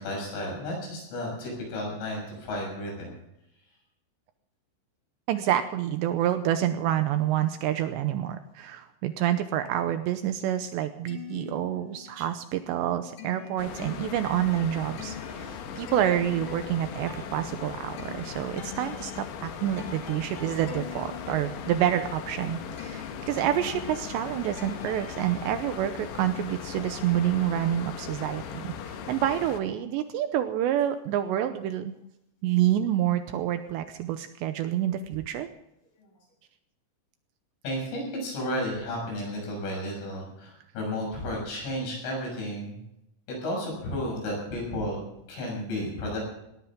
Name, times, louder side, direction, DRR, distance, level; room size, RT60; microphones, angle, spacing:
voice 1, 0.0-3.1 34.8-34.9 37.6-42.8 43.3-45.0 45.3-46.2, left 1 dB, 90° left, -1 dB, 9.2 m, -33 dB
voice 2, 5.3-31.9 32.4-35.5, right 11 dB, 80° right, 9 dB, 2.8 m, -28 dB
sound 1, 10.9-12.3 12.6-25.5, left 7 dB, 45° left, 2.3 m, -44 dB
sound 2, 13.6-29.6, left 7 dB, 70° left, 3.4 m, -39 dB
19.0 x 17.5 x 3.7 m, 0.83 s
omnidirectional pair, 5.4 m